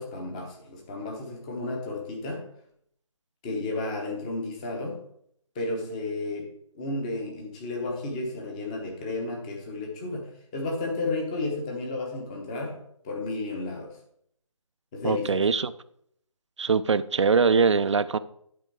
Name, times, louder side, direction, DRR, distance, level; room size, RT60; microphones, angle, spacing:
voice 1, 0.0-2.4 3.4-5.0 5.5-6.5 6.7-13.9 14.9-15.4, left 2 dB, 10° left, 1 dB, 1.0 m, -32 dB
voice 2, 15.0-15.7 16.6-18.2, right 5 dB, 55° right, 14 dB, 0.5 m, -22 dB
11.5 x 4.5 x 4.6 m, 0.70 s
figure-of-eight pair, 165°, 18 cm